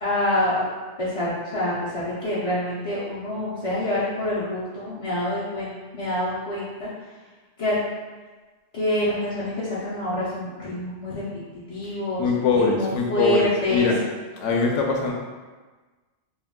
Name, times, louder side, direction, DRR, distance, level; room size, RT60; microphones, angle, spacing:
voice 1, 0.0-0.7 1.0-7.1 7.6-7.8 8.7-11.2 11.5-12.2 12.5-13.9, left 1 dB, 50° left, -9 dB, 0.4 m, -26 dB
voice 2, 12.2-14.0 14.4-15.1, left 4 dB, 80° left, 0 dB, 0.9 m, -22 dB
2.3 x 2.2 x 3.5 m, 1.3 s
omnidirectional pair, 1.2 m